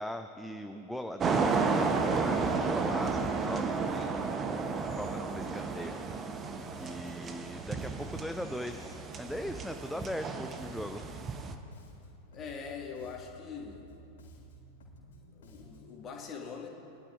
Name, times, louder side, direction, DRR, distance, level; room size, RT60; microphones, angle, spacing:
voice 1, 0.0-4.1 4.8-6.0 6.3-6.4 6.8-11.1, equal, ahead, 6 dB, 0.4 m, -39 dB
sound 1, 1.2-11.6, right 4 dB, 25° right, 0.8 m, -32 dB
Bass guitar, 6.1-16.0, left 1 dB, 60° left, 3.1 m, -54 dB
voice 2, 12.3-13.9 15.3-16.7, left 6 dB, 25° left, 0 dB, 1.7 m, -42 dB
21.5 x 11.5 x 2.5 m, 2.7 s
figure-of-eight pair, 90°, 0 cm